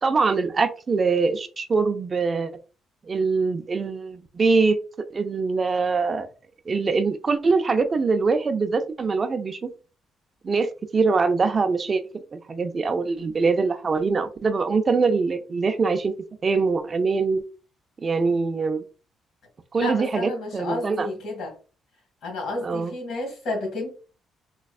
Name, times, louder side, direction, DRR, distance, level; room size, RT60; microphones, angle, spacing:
voice 1, 0.0-2.5 3.1-4.8 5.1-6.3 6.7-9.7 10.4-16.1 16.4-17.4 18.0-18.8 19.7-21.1 22.6-22.9, right 4 dB, 35° right, 0.4 m, -23 dB
voice 2, 19.8-21.5 22.2-23.9, left 2 dB, 75° left, 1.7 m, -31 dB
4.2 x 2.3 x 2.3 m
cardioid pair, 90°, 0 cm